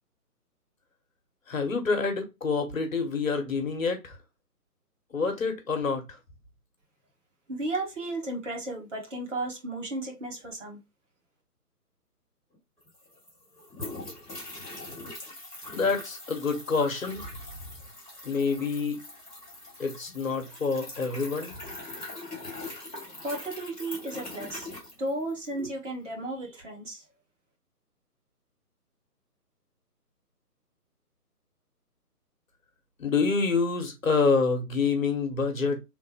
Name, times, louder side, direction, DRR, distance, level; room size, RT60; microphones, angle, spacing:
voice 1, 1.5-4.2 5.1-6.2 15.7-17.4 18.2-19.1 19.8-21.6 33.0-35.8, left 4 dB, 55° left, 1.0 m, -27 dB
voice 2, 7.5-10.8 23.2-24.7 25.0-27.0, right 2 dB, 50° right, 1.3 m, -34 dB
sound 1, 12.5-12.6 12.8-25.6, left 2 dB, ahead, 0.7 m, -42 dB
3.2 x 2.1 x 3.4 m
figure-of-eight pair, 140°, 47 cm